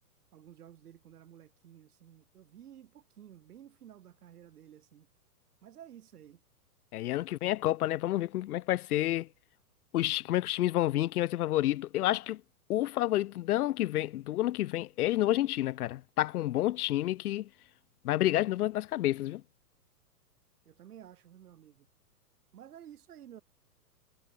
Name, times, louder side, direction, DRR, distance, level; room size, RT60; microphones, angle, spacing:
voice 1, 0.3-5.1 5.6-6.4 20.6-21.9 22.5-23.4, right 10 dB, 70° right, 4.5 m, -53 dB
voice 2, 6.9-9.3 9.9-12.4 12.7-17.5 18.0-19.4, left 15 dB, 65° left, 0.6 m, -29 dB
hypercardioid pair, 135°, 47 cm